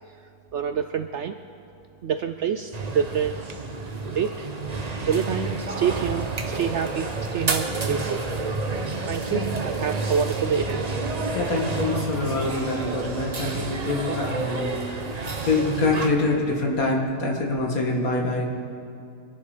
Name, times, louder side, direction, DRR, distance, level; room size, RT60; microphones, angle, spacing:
voice 1, 0.5-1.4 2.0-3.4 4.1-4.5 5.1-6.3 6.5-8.2 9.1-10.8, right 7 dB, 65° right, 9 dB, 0.7 m, -27 dB
sound 1, 2.7-16.1, right 3 dB, 30° right, 0.9 m, -29 dB
voice 2, 11.3-15.0 15.5-18.5, left 3 dB, 65° left, 0 dB, 2.3 m, -25 dB
24.5 x 11.0 x 5.0 m, 2.4 s
omnidirectional pair, 1.6 m